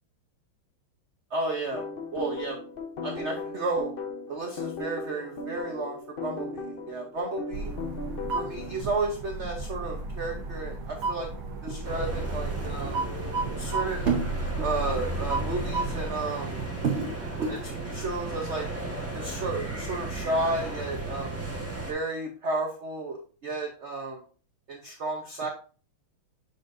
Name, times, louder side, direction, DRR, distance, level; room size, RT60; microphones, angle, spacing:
voice 1, 1.3-1.8 2.1-2.6 3.0-3.9 4.3-7.7 8.3-11.3 11.6-13.1 13.6-14.3 14.6-17.1 17.4-18.7 19.1-21.4 21.9-24.2 24.7-25.5, right 3 dB, 55° right, 2 dB, 0.7 m, -32 dB
sound 1, 1.7-8.8, left 3 dB, 50° left, 0.7 m, -37 dB
sound 2, 7.5-16.1, right 2 dB, 80° right, 1.9 m, -33 dB
sound 3, 11.8-21.9, right 2 dB, 10° right, 0.9 m, -35 dB
7.4 x 5.3 x 2.6 m, 0.39 s
omnidirectional pair, 2.2 m